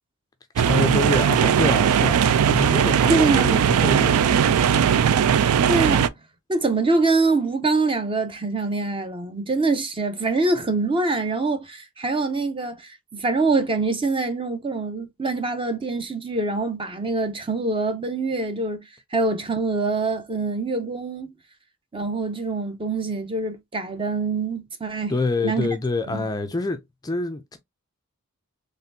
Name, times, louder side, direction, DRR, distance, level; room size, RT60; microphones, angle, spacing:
voice 1, 0.6-4.9 25.1-27.6, left 2 dB, 15° left, 0.4 m, -27 dB
sound 1, 0.6-6.1, right 8 dB, 75° right, 0.3 m, -19 dB
voice 2, 3.1-3.7 5.7-6.1 6.5-18.8 19.1-21.3 21.9-25.1 25.4-25.7 26.1-26.2, right 3 dB, 25° right, 0.7 m, -24 dB
4.1 x 3.4 x 2.6 m
head